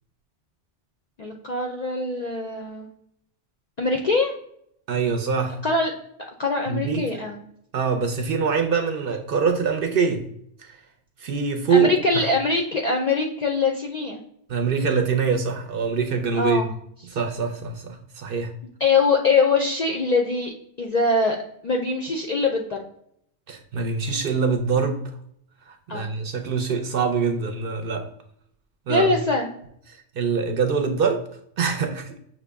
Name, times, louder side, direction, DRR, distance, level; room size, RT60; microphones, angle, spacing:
voice 1, 1.2-2.9 3.8-4.3 5.6-5.9 6.4-7.4 11.7-14.2 16.3-16.7 18.8-20.5 20.8-21.4 21.6-22.8 25.9-26.1 28.9-29.5, left 3 dB, 60° left, 1 dB, 0.4 m, -23 dB
voice 2, 4.9-5.6 6.7-7.2 7.7-10.2 10.6-10.8 11.2-12.2 14.5-16.6 17.1-18.5 23.5-25.0 25.7-28.1 28.9-29.1 30.2-31.2 31.6-32.2, right 5 dB, 60° right, 5 dB, 0.6 m, -24 dB
6.0 x 2.0 x 3.3 m, 0.70 s
omnidirectional pair, 1.2 m